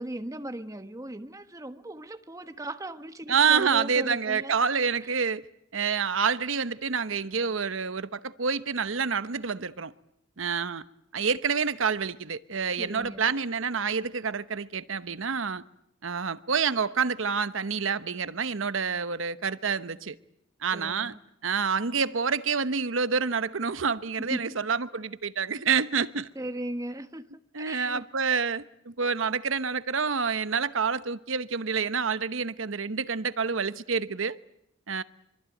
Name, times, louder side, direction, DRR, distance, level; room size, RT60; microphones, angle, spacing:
voice 1, 0.0-4.5 12.8-13.3 20.7-21.2 24.2-24.6 26.3-28.0, right 1 dB, 15° right, 1.3 m, -37 dB
voice 2, 3.3-5.4 5.7-9.9 10.4-10.8 11.1-15.6 16.0-20.2 20.6-21.1 21.4-26.3 27.5-34.4 34.9-35.0, right 6 dB, 75° right, 1.0 m, -28 dB
25.0 x 24.5 x 9.1 m
head